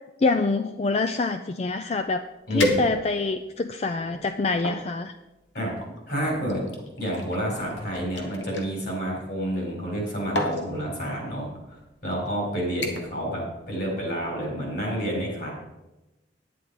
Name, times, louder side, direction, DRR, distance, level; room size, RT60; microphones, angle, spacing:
voice 1, 0.0-2.2 2.5-5.1, left 3 dB, 35° left, 9 dB, 0.4 m, -26 dB
sound 1, 1.9-2.0 2.6-3.4 4.0-4.8 5.8-8.7 9.8-10.0 10.3-10.7 11.5-11.7 12.1-12.4 12.8-13.2 13.5-13.9 14.3-14.4, left 1 dB, 85° left, 1.7 m, -31 dB
voice 2, 2.5-2.8 5.5-5.7 6.1-15.5, equal, 55° left, -1 dB, 4.5 m, -29 dB
10.5 x 9.5 x 4.9 m, 1.0 s
head